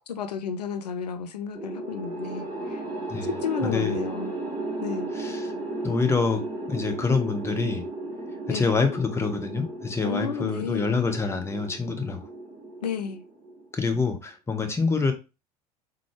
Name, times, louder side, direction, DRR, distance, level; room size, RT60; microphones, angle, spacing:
voice 1, 0.1-2.8 3.4-4.3 4.8-5.1 8.5-8.7 10.0-10.9 12.8-13.2, left 6 dB, 80° left, 0.4 m, -32 dB
sound 1, 1.5-13.9, right 2 dB, 20° right, 1.7 m, -35 dB
voice 2, 3.1-4.0 5.1-5.5 5.8-7.8 8.5-12.3 13.7-15.1, left 4 dB, 15° left, 0.8 m, -26 dB
3.7 x 3.3 x 3.2 m
figure-of-eight pair, 75°, 21 cm